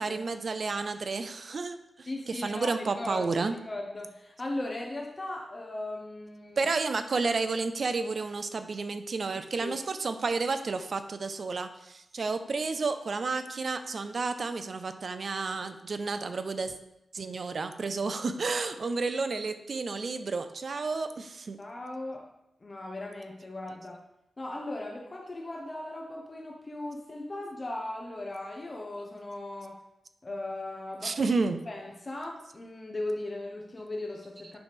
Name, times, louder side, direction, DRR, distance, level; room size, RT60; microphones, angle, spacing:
voice 1, 0.0-3.5 6.6-16.8 17.1-21.6 31.0-31.6, right 4 dB, 55° right, 9 dB, 0.5 m, -31 dB
voice 2, 2.0-6.6 9.3-9.8 21.6-22.3 22.6-24.0 24.4-29.8 30.2-31.2 31.7-34.6, left 2 dB, 35° left, 0 dB, 0.8 m, -38 dB
9.0 x 3.3 x 5.2 m, 0.86 s
wide cardioid pair, 110°, 0 cm